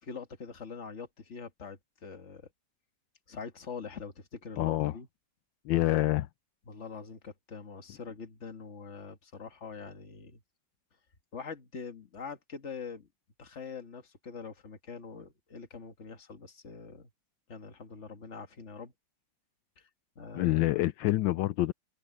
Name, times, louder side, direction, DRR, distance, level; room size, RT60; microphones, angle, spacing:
voice 1, 0.0-2.4 3.3-5.1 6.7-10.4 11.3-13.1 13.4-17.1 17.5-18.9 19.8-19.9 20.2-20.8, left 5 dB, 40° left, 1.9 m, -44 dB
voice 2, 4.6-4.9 5.7-6.3 20.3-21.7, left 16 dB, 80° left, 1.4 m, -27 dB
omnidirectional pair, 2.1 m